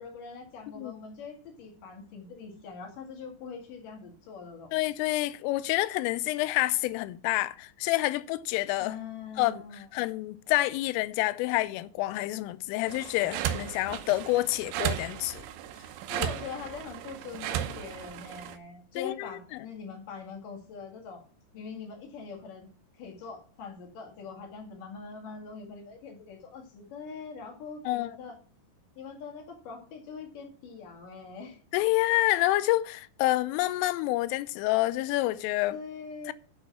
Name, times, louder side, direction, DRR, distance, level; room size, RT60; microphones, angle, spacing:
voice 1, 0.0-4.7 8.8-9.9 16.1-21.2 21.5-22.7 23.0-28.4 29.0-31.6 35.7-36.3, left 5 dB, 50° left, 3.0 m, -43 dB
voice 2, 4.7-8.9 9.4-9.6 9.9-15.4 16.2-16.3 19.0-19.3 27.9-28.2 31.7-35.8 36.3-36.4, left 17 dB, 85° left, 3.2 m, -28 dB
sound 1, 12.9-18.6, right 11 dB, 80° right, 3.3 m, -35 dB
9.2 x 7.0 x 5.9 m
omnidirectional pair, 5.8 m